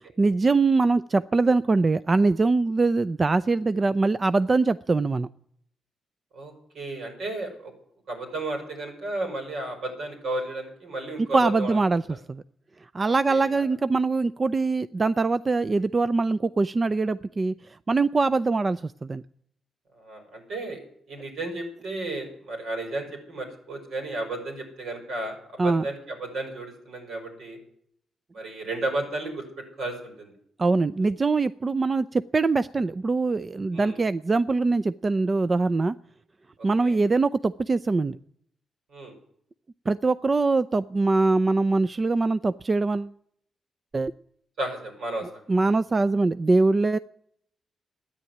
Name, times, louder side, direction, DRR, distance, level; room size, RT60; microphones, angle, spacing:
voice 1, 0.2-5.3 11.3-12.0 12.3-12.4 12.9-17.5 17.9-19.2 25.6-25.8 30.6-35.9 36.6-38.2 39.9-43.1 43.9-44.1 45.5-47.0, right 3 dB, 40° right, 15 dB, 0.5 m, -23 dB
voice 2, 6.3-7.7 8.1-11.8 12.1-12.2 13.3-13.7 19.9-20.8 21.1-25.4 25.6-27.6 28.3-30.3 33.7-34.0 36.6-37.0 38.9-39.1 44.6-45.3, right 2 dB, 75° right, 4 dB, 5.7 m, -33 dB
13.5 x 10.0 x 9.4 m, 0.71 s
supercardioid pair, 50°, 0 cm